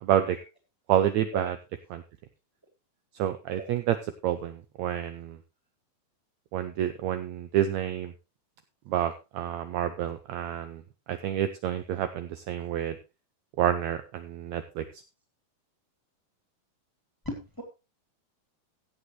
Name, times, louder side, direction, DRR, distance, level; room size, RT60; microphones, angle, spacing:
voice 1, 0.0-0.4 0.9-1.6 1.9-2.0 3.2-4.0 4.2-5.4 6.5-8.1 8.9-10.8 11.1-13.0 13.6-14.9, right 11 dB, 85° right, 9 dB, 1.6 m, -28 dB
voice 2, 17.2-17.6, right 1 dB, 5° left, 3 dB, 2.0 m, -35 dB
16.0 x 8.1 x 3.1 m, 0.27 s
omnidirectional pair, 4.1 m